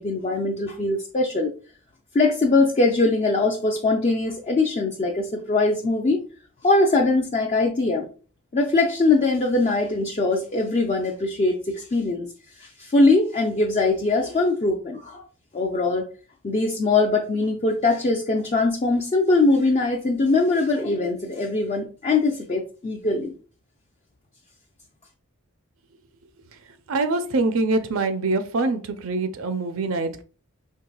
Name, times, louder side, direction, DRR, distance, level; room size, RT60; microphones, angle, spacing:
voice 1, 0.0-1.5 2.1-6.2 6.6-8.1 8.5-12.3 12.6-15.2 15.5-16.1 16.4-23.3, left 3 dB, 30° left, 1 dB, 0.4 m, -22 dB
voice 2, 26.9-30.2, right 3 dB, 65° right, 9 dB, 0.5 m, -24 dB
4.6 x 3.2 x 2.3 m, 0.38 s
head